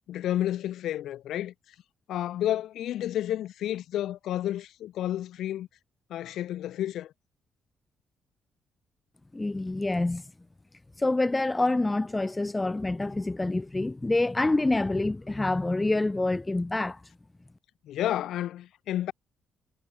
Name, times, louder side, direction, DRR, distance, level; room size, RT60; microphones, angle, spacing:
voice 1, 0.1-1.5 2.1-5.7 6.1-7.1 17.8-19.1, left 12 dB, 80° left, 1.0 m, -31 dB
voice 2, 9.3-10.2 11.0-17.0, left 2 dB, 15° left, 0.5 m, -27 dB
cardioid pair, 90°, 0 cm